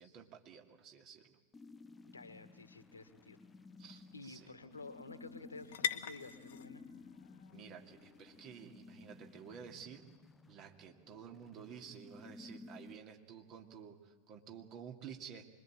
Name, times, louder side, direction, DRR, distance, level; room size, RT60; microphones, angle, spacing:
voice 1, 0.0-1.4 3.8-4.5 7.5-10.1 10.5-15.5, right 7 dB, 35° right, 3 dB, 2.6 m, -52 dB
sound 1, 1.5-13.0, left 3 dB, 10° left, 0.8 m, -56 dB
voice 2, 2.1-3.4 4.1-6.8, left 3 dB, 75° left, 12 dB, 1.6 m, -51 dB
sound 2, 2.5-10.1, left 10 dB, 55° left, 1.0 m, -47 dB
25.5 x 22.0 x 8.8 m, 1.4 s
figure-of-eight pair, 90°, 0 cm